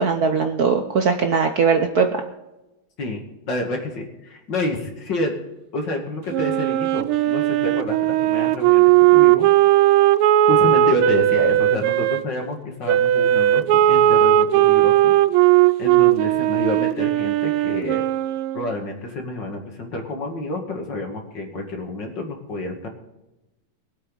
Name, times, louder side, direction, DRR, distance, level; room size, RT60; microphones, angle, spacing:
voice 1, 0.0-2.2, right 5 dB, 55° right, 5 dB, 1.2 m, -20 dB
voice 2, 3.5-5.3 5.7-9.5 10.5-15.1 15.8-18.0 18.5-22.9, left 2 dB, 55° left, 2 dB, 2.7 m, -28 dB
Wind instrument woodwind instrument, 6.3-12.2 12.9-18.7, right 13 dB, 85° right, 1.5 m, -17 dB
22.5 x 8.4 x 3.9 m, 0.99 s
omnidirectional pair, 2.4 m